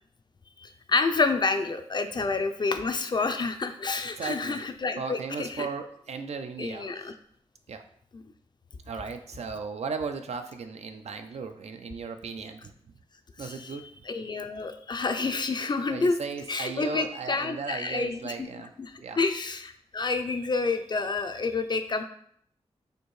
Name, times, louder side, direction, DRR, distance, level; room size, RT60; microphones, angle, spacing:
voice 1, 0.6-5.7 6.6-7.1 8.1-8.2 13.4-13.8 14.1-16.2 16.5-18.5 18.8-22.0, left 4 dB, 40° left, 8 dB, 0.4 m, -29 dB
voice 2, 4.2-4.7 5.0-7.1 7.7-7.8 8.9-12.7 13.4-13.8 15.9-18.7 19.0-19.2, right 5 dB, 70° right, 7 dB, 0.4 m, -36 dB
4.3 x 2.7 x 3.1 m, 0.66 s
wide cardioid pair, 80°, 11 cm